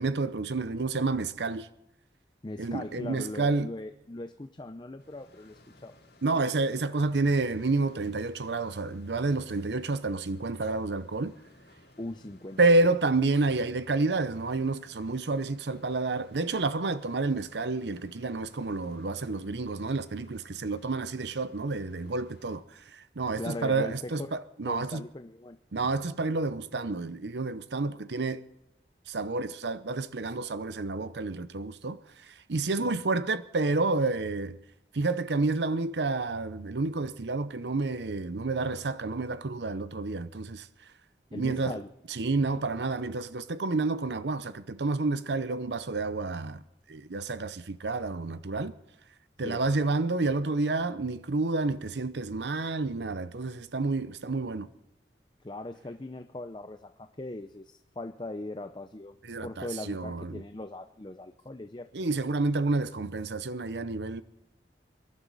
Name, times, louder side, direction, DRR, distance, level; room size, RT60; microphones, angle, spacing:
voice 1, 0.0-1.7 2.6-3.7 6.2-11.3 12.6-25.0 25.7-28.4 29.1-32.0 32.3-34.6 34.9-40.7 41.3-41.8 42.1-46.6 46.9-48.7 49.4-54.7 59.3-60.4 61.9-64.2, right 3 dB, 80° right, 0.7 m, -29 dB
voice 2, 2.4-6.0 12.0-12.6 23.4-24.3 24.7-25.6 32.8-33.0 41.3-41.9 49.4-49.6 55.4-61.9, left 2 dB, 25° left, 0.6 m, -40 dB
sound 1, 5.0-22.6, left 1 dB, 80° left, 5.3 m, -58 dB
25.5 x 11.5 x 4.0 m
head